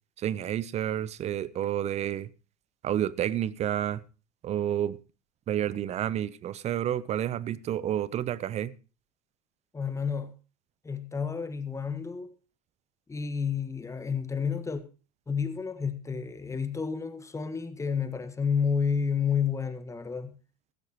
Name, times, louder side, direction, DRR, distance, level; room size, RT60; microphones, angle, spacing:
voice 1, 0.2-2.3 2.8-4.0 4.4-5.0 5.5-8.7, right 11 dB, 35° right, 0.8 m, -30 dB
voice 2, 9.7-10.3 10.8-12.3 13.1-14.8 15.3-20.3, left 6 dB, 15° left, 1.6 m, -30 dB
15.5 x 13.5 x 3.1 m
hypercardioid pair, 85°, 20 cm